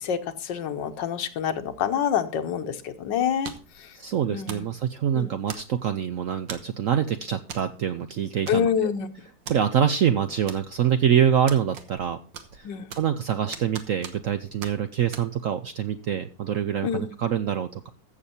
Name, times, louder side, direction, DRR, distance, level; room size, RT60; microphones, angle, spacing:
voice 1, 0.0-3.5 4.3-4.6 5.1-5.3 8.5-9.1 12.6-12.9 16.8-17.1, left 8 dB, 75° left, 10 dB, 1.6 m, -27 dB
sound 1, 3.4-3.8 4.5-4.7 5.5-5.9 6.5-6.8 7.5-7.7 8.0-8.1 8.5-8.9 9.5-9.6 10.5-10.9 11.5-12.1 12.3-13.2 13.5-14.3 14.6-14.7 15.1-15.3, right 7 dB, 90° right, 1.9 m, -39 dB
voice 2, 3.9-8.9 9.5-12.2 12.5-12.7 13.0-17.9, right 9 dB, 70° right, 10 dB, 0.8 m, -25 dB
14.5 x 6.9 x 4.3 m, 0.36 s
omnidirectional pair, 2.0 m